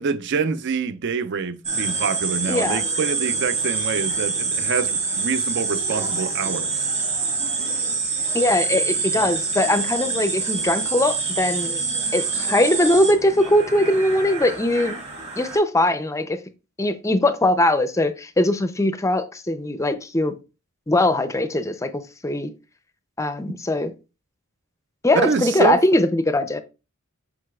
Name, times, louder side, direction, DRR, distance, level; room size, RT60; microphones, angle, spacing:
voice 1, 0.0-6.7 25.1-25.8, right 5 dB, 55° right, 0.5 m, -25 dB
sound 1, 1.6-15.6, right 4 dB, 30° right, 1.8 m, -26 dB
voice 2, 2.5-2.8 8.3-11.8 12.1-15.0 15.4-16.4 16.8-20.3 20.9-22.5 23.2-23.9 25.0-26.6, left 1 dB, 15° left, 0.5 m, -21 dB
7.7 x 5.7 x 2.3 m
head